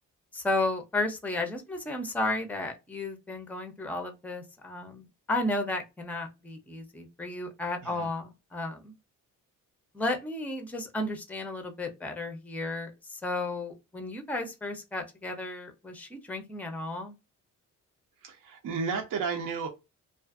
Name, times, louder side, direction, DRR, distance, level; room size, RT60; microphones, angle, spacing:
voice 1, 0.3-8.9 9.9-17.1, left 2 dB, 5° left, 0.5 m, -33 dB
voice 2, 18.2-19.7, right 5 dB, 65° right, 0.7 m, -33 dB
2.5 x 2.4 x 2.4 m
cardioid pair, 105°, 35 cm